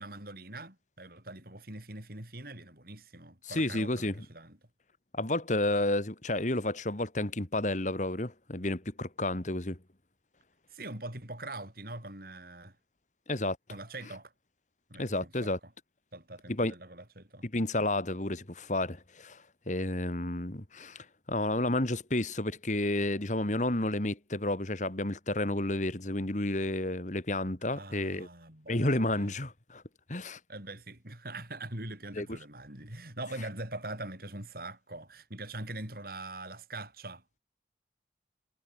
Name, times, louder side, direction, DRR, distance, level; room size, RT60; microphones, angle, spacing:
voice 1, 0.0-4.6 10.7-12.8 13.7-14.3 14.9-15.7 16.1-17.5 27.7-29.3 30.5-37.4, right 2 dB, 55° right, 7.3 m, -43 dB
voice 2, 3.4-4.2 5.1-9.8 13.3-13.6 15.0-15.6 16.5-16.7 17.4-19.4 19.7-28.3 28.7-29.8 30.1-30.4 32.2-32.3, left 1 dB, 45° left, 2.3 m, -31 dB
head